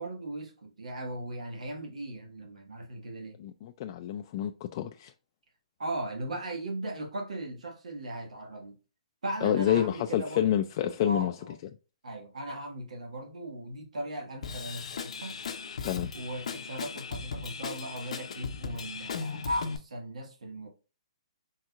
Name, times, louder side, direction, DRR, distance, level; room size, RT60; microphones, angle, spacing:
voice 1, 0.0-3.4 5.8-8.8 9.2-10.6 11.0-11.5 12.0-15.4 16.1-20.7, right 1 dB, 85° right, 1.4 m, -38 dB
voice 2, 3.4-5.1 9.4-11.3 15.8-16.1, left 11 dB, 40° left, 0.3 m, -28 dB
Drum kit / Drum, 14.4-19.8, left 5 dB, 70° left, 0.6 m, -37 dB
4.4 x 3.7 x 2.4 m
hypercardioid pair, 145°, 4 cm